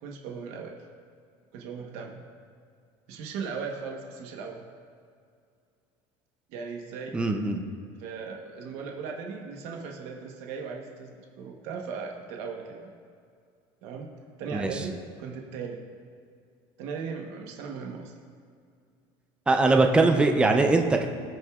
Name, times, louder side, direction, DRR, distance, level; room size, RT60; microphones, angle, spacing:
voice 1, 0.0-0.8 1.5-2.2 3.1-4.7 6.5-7.2 8.0-12.9 13.8-14.1 14.4-14.9 15.2-15.8 16.8-18.1, right 5 dB, 65° right, 1 dB, 1.1 m, -37 dB
voice 2, 7.1-7.6 14.5-14.7 19.5-21.1, right 3 dB, 10° right, 4 dB, 0.5 m, -21 dB
19.0 x 6.3 x 2.4 m, 2.3 s
cardioid pair, 170°, 12 cm